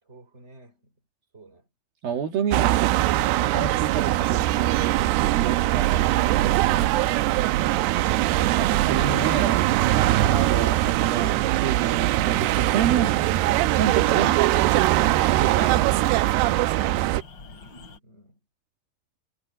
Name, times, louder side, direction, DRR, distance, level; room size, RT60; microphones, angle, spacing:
voice 1, 0.0-1.0 1.3-1.7 17.4-18.4, right 1 dB, 15° right, 5.7 m, -53 dB
voice 2, 2.0-7.2 8.6-9.6 10.2-13.4 13.7-15.9, right 8 dB, 65° right, 3.8 m, -30 dB
sound 1, 2.5-17.2, right 15 dB, 90° right, 2.7 m, -21 dB
sound 2, 6.9-18.0, left 4 dB, 30° left, 4.1 m, -47 dB
omnidirectional pair, 4.7 m